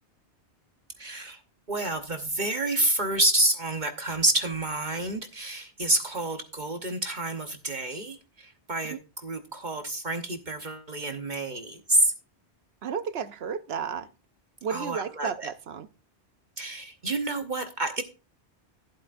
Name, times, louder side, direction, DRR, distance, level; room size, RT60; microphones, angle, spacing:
voice 1, 1.0-1.4 1.7-12.1 14.7-15.5 16.6-18.0, right 2 dB, 45° right, 1.1 m, -28 dB
voice 2, 12.8-14.1 14.6-15.9, right 7 dB, 70° right, 0.9 m, -32 dB
11.5 x 11.0 x 2.5 m
omnidirectional pair, 1.1 m